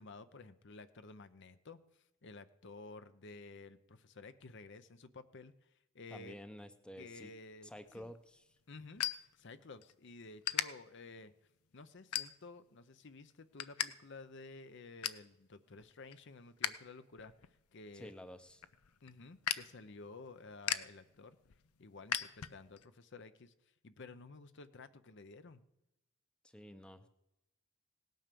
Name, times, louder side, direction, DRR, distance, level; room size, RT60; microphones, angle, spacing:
voice 1, 0.0-6.3 7.0-8.1 8.7-9.0 9.4-11.3 11.7-18.1 19.0-21.4 21.8-25.6, left 3 dB, 55° left, 12 dB, 0.7 m, -53 dB
voice 2, 6.1-7.3 7.6-8.6 17.9-18.6 26.4-27.1, equal, 5° left, 10 dB, 0.7 m, -51 dB
sound 1, 7.9-9.9 10.4-10.7 11.2-11.5 12.1-12.7 13.1-13.9 14.2-14.3 14.6-15.3 15.7-16.8 17.1-22.9, left 11 dB, 90° left, 0.7 m, -40 dB
18.0 x 9.2 x 6.8 m, 0.91 s
head